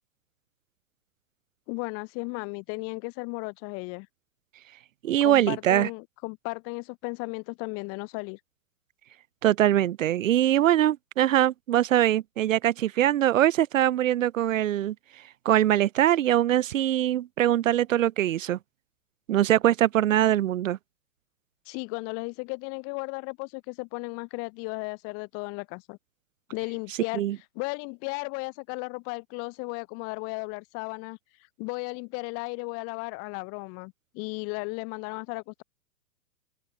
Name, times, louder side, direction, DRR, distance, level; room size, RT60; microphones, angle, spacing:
voice 1, 1.7-4.1 5.2-8.4 21.7-26.0 26.5-27.2 27.6-31.2 31.6-35.6, left 32 dB, 35° left, 1.9 m, -35 dB
voice 2, 5.0-5.9 9.4-14.9 15.4-18.6 19.3-20.8 27.1-27.4, right 12 dB, 70° right, 1.1 m, -22 dB
open air
hypercardioid pair, 135°, 40 cm